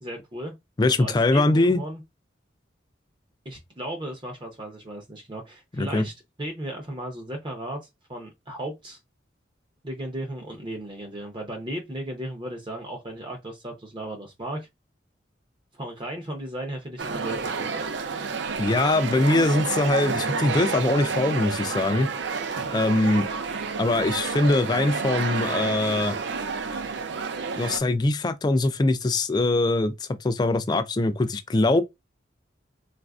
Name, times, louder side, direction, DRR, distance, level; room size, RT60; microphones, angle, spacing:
voice 1, 0.0-0.5 1.0-2.0 3.4-6.1 6.4-7.8 8.1-9.0 9.8-14.7 15.7-17.9, right 1 dB, 25° right, 0.6 m, -35 dB
voice 2, 0.8-1.8 5.7-6.0 18.6-22.1 22.7-23.3 23.8-26.2 27.6-31.8, left 2 dB, 20° left, 0.3 m, -22 dB
sound 1, 17.0-27.8, right 4 dB, 70° right, 0.5 m, -29 dB
4.0 x 2.5 x 2.3 m
head